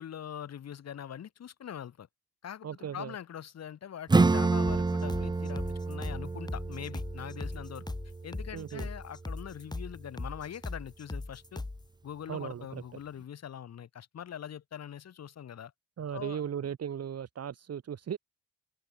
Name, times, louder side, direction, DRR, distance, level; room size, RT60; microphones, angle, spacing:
voice 1, 0.0-2.1 2.4-7.9 8.2-11.6 12.0-15.7 16.1-16.4, left 9 dB, 55° left, 3.4 m, -43 dB
voice 2, 2.6-3.1 8.5-8.9 12.3-12.8 16.0-18.2, right 8 dB, 55° right, 5.0 m, -37 dB
Acoustic guitar / Strum, 4.1-9.3, right 3 dB, 15° right, 0.7 m, -29 dB
sound 1, 4.6-11.9, left 2 dB, 15° left, 1.2 m, -39 dB
open air
cardioid pair, 90°, 30 cm